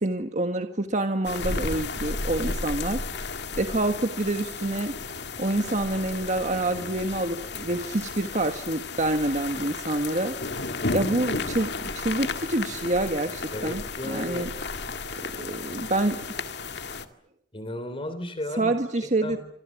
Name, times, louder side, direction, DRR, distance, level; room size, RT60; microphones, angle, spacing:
voice 1, 0.0-3.0 3.6-4.9 5.4-10.3 10.9-14.5 15.2-16.2 18.6-19.4, right 2 dB, 40° right, 6 dB, 1.5 m, -27 dB
sound 1, 1.2-17.0, left 3 dB, 65° left, 2.0 m, -33 dB
voice 2, 13.5-14.5 17.5-18.7 19.2-19.4, left 1 dB, 30° left, 11 dB, 3.2 m, -34 dB
27.5 x 26.0 x 7.3 m, 0.75 s
head